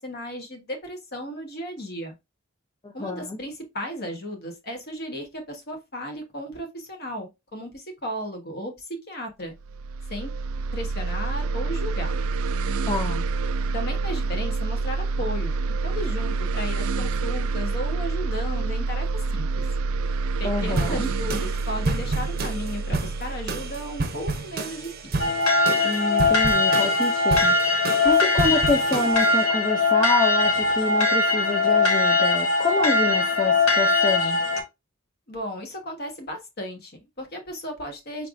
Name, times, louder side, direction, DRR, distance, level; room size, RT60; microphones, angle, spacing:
voice 1, 0.0-2.1 2.9-9.5 10.1-10.3 10.7-12.1 13.7-15.5 15.8-19.1 19.3-19.6 20.4-25.3 35.3-38.3, equal, 45° left, 1.3 m, -35 dB
voice 2, 2.8-3.4 12.9-13.2 20.4-21.1 25.8-27.5 28.0-34.4, left 3 dB, 20° left, 0.4 m, -27 dB
sound 1, 9.6-25.0, right 3 dB, 75° right, 0.3 m, -27 dB
sound 2, 20.8-29.5, right 3 dB, 45° right, 0.7 m, -31 dB
sound 3, 25.2-34.6, left 3 dB, 80° left, 1.2 m, -21 dB
4.8 x 3.5 x 2.5 m
head